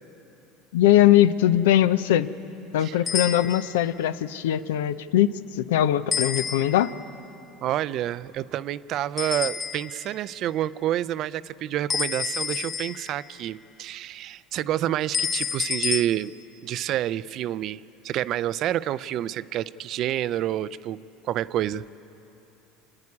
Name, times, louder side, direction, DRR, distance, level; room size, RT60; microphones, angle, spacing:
voice 1, 0.7-2.3 2.7-6.9, left 12 dB, 85° left, 14 dB, 0.6 m, -21 dB
sound 1, 3.1-3.8 6.1-7.0 9.2-10.1 11.9-13.3 15.1-16.0, left 6 dB, 35° left, 1.0 m, -29 dB
voice 2, 7.6-16.3 16.6-21.8, right 12 dB, 55° right, 17 dB, 0.4 m, -28 dB
28.5 x 9.7 x 9.7 m, 2.9 s
supercardioid pair, 95°, 0 cm